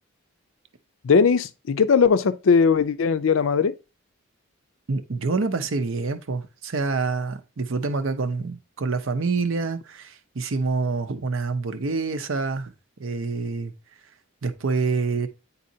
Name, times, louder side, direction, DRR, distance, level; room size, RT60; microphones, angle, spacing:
voice 1, 1.0-3.7, left 5 dB, 70° left, 0.4 m, -19 dB
voice 2, 4.9-12.7 13.0-13.7 14.4-15.3, right 4 dB, 65° right, 0.7 m, -27 dB
8.7 x 4.1 x 2.7 m
head